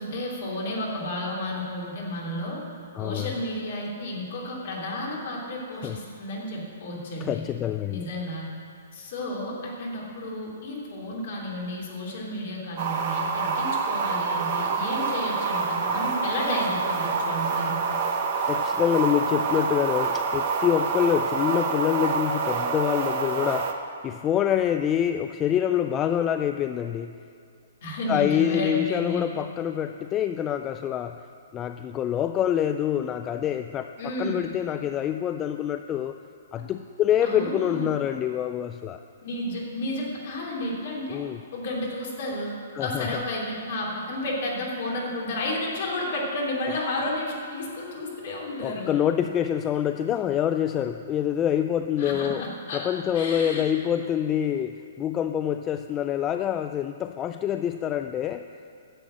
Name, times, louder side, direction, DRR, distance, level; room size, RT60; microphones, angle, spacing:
voice 1, 0.0-2.6 3.0-7.4 7.9-8.4 8.9-17.8 27.8-29.2 34.0-34.4 37.2-37.8 39.2-41.2 41.5-42.5 42.8-48.9 52.0-52.9 53.1-53.6, left 1 dB, 55° left, -3 dB, 3.2 m, -32 dB
voice 2, 2.9-3.3 5.8-6.0 7.2-8.0 18.5-27.2 28.1-31.2 31.5-36.1 36.5-39.0 41.1-41.4 42.7-43.2 48.6-52.4 52.7-58.4, left 10 dB, 25° left, 8 dB, 0.3 m, -26 dB
sound 1, 12.8-23.7, right 5 dB, 40° right, 1.1 m, -27 dB
11.0 x 7.7 x 7.5 m, 2.3 s
figure-of-eight pair, 120°, 0 cm